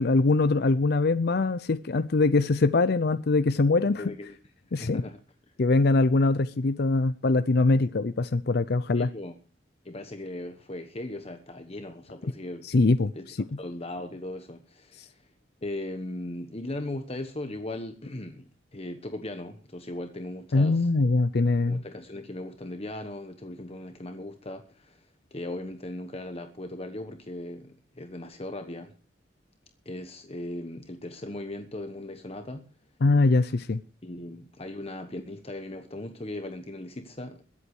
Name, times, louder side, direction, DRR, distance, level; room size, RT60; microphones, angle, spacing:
voice 1, 0.0-4.0 4.7-5.0 5.6-9.1 12.6-13.4 20.5-21.8 33.0-33.8, left 3 dB, 60° left, 0.6 m, -23 dB
voice 2, 4.0-4.4 4.8-5.2 8.9-9.3 9.8-12.7 13.1-13.3 13.6-15.2 15.6-20.9 21.7-25.1 25.3-28.9 29.8-32.7 34.0-37.4, left 1 dB, 35° left, 1.2 m, -38 dB
22.0 x 8.3 x 4.8 m
head